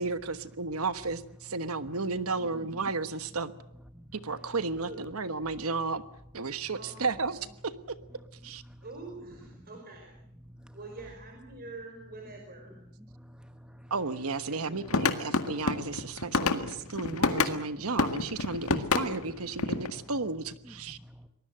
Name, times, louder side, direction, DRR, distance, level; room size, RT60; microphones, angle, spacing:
voice 1, 0.0-3.5 4.1-6.0 6.3-8.0 8.4-8.6 13.9-21.0, right 3 dB, 70° right, 13 dB, 1.3 m, -33 dB
voice 2, 2.3-2.7 4.8-5.0 6.7-7.5 8.8-10.1 10.7-12.8 14.3-15.0, right 2 dB, 45° right, 2 dB, 4.9 m, -46 dB
voice 3, 3.9-4.5 8.2-8.8 10.4-10.8 13.0-13.9 14.6-14.9 16.0-16.1 16.6-17.9 19.6-19.7 20.6-21.3, equal, 5° right, 8 dB, 0.9 m, -51 dB
sound 1, 14.8-17.6 18.0-19.9, left 3 dB, 70° left, 1.8 m, -28 dB
24.5 x 19.5 x 7.8 m, 0.78 s
head